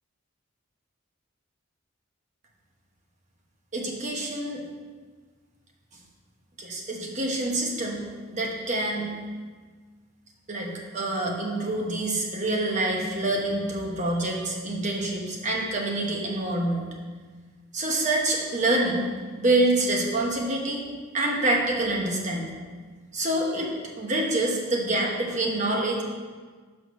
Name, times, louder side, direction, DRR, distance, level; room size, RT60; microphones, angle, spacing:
voice 1, 3.7-4.6 6.6-8.0 8.3-9.1 10.5-16.8 17.7-19.0 19.4-20.8 21.1-22.5 23.1-23.7 24.0-26.0, right 2 dB, 35° right, 0 dB, 1.1 m, -26 dB
6.4 x 5.0 x 6.2 m, 1.5 s
head